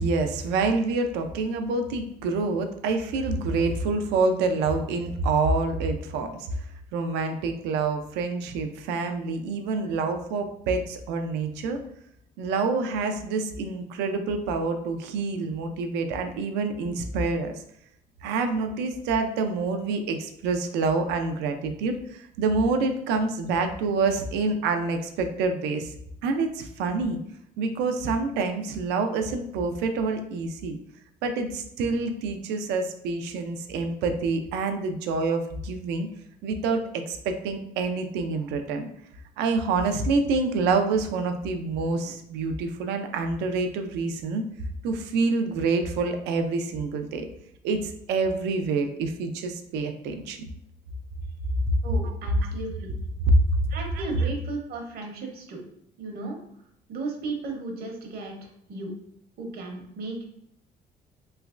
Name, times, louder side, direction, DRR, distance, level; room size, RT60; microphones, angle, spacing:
voice 1, 0.0-6.5 6.9-11.8 12.4-17.6 18.2-25.9 26.2-27.2 27.6-30.8 31.2-36.1 36.4-38.9 39.4-44.4 44.8-47.3 47.6-50.4 52.4-52.5 53.3-53.5, right 3 dB, 90° right, 6 dB, 0.4 m, -27 dB
voice 2, 51.8-52.9 53.7-55.6 56.0-56.4 56.9-58.9 59.4-60.3, right 3 dB, 65° right, 2 dB, 0.8 m, -35 dB
3.2 x 3.0 x 2.4 m, 0.73 s
cardioid pair, 110°, 17 cm